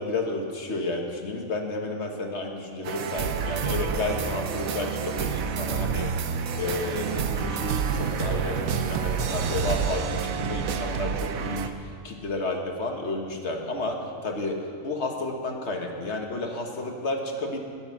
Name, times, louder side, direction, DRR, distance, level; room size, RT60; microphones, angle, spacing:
voice 1, 0.0-6.1 6.5-11.7 12.0-17.6, left 2 dB, 55° left, 2 dB, 1.8 m, -31 dB
sound 1, 2.8-11.7, right 7 dB, 85° right, 1.2 m, -28 dB
20.5 x 8.3 x 5.9 m, 2.3 s
omnidirectional pair, 1.4 m